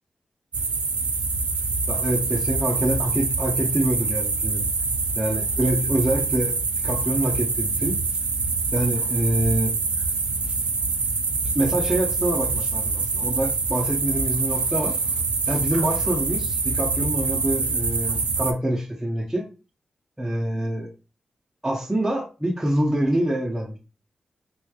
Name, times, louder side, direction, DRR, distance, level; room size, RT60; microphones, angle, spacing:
sound 1, 0.5-18.5, right 4 dB, 70° right, 0.5 m, -25 dB
voice 1, 1.9-4.6 5.2-6.6 6.8-8.0 8.7-9.7 11.5-15.0 15.5-19.5 20.2-20.9 21.6-23.8, right 1 dB, 10° right, -5 dB, 0.6 m, -25 dB
3.5 x 3.0 x 2.3 m, 0.32 s
wide cardioid pair, 135°, 2 cm